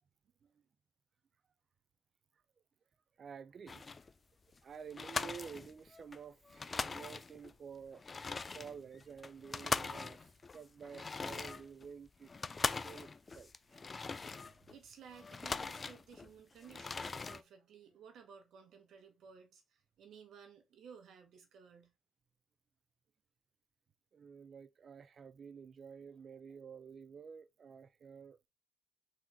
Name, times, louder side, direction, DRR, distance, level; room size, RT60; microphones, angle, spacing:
voice 1, 3.2-3.9 4.6-8.3 8.5-13.8 24.1-28.4, right 6 dB, 50° right, 0.4 m, -51 dB
sound 1, 3.7-4.1 4.5-4.6 4.9-6.2 6.5-7.5 7.9-14.8 15.1-16.3 16.6-17.4, left 4 dB, 30° left, 0.3 m, -41 dB
voice 2, 14.7-21.9, right 7 dB, 70° right, 1.2 m, -57 dB
3.9 x 2.8 x 4.5 m
cardioid pair, 90°, 0 cm